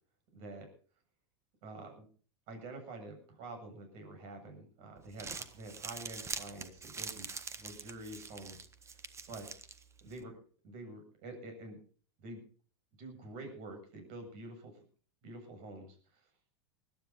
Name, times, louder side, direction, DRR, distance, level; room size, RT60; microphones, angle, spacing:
voice 1, 0.3-0.7 1.6-2.1 2.5-9.0 9.3-9.5 10.0-10.4 10.6-11.8 12.2-12.4 13.0-14.7 15.2-16.0, right 2 dB, 55° right, 5 dB, 7.6 m, -47 dB
Crumpling crinkling, 5.0-10.2, right 5 dB, 20° right, 1.4 m, -45 dB
20.5 x 12.5 x 4.1 m, 0.42 s
hypercardioid pair, 105°, 14 cm